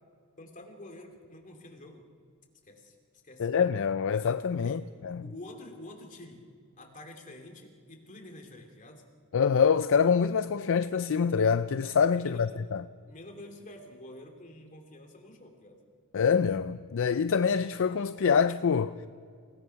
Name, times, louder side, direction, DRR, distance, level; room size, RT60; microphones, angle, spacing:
voice 1, 0.4-2.1 2.7-2.9 3.2-3.5 4.6-4.8 5.2-6.5 6.8-9.0 12.2-12.5 13.1-15.8, left 1 dB, 35° left, 2.8 m, -48 dB
voice 2, 3.4-5.2 9.3-12.8 16.1-18.9, left 6 dB, 60° left, 0.4 m, -25 dB
28.5 x 17.5 x 5.8 m
head